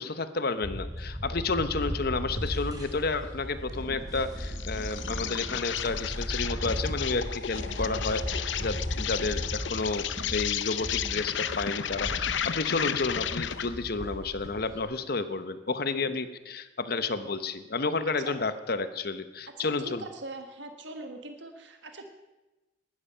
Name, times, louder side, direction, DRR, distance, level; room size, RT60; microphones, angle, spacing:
voice 1, 0.0-20.0, left 3 dB, 55° left, 11 dB, 1.0 m, -31 dB
sound 1, 0.6-14.8, equal, 20° right, 3.7 m, -36 dB
Insect, 4.4-13.8, left 9 dB, 85° left, 0.7 m, -33 dB
voice 2, 19.6-22.1, right 2 dB, 75° right, 5 dB, 1.4 m, -42 dB
19.0 x 12.5 x 5.6 m, 1.1 s
head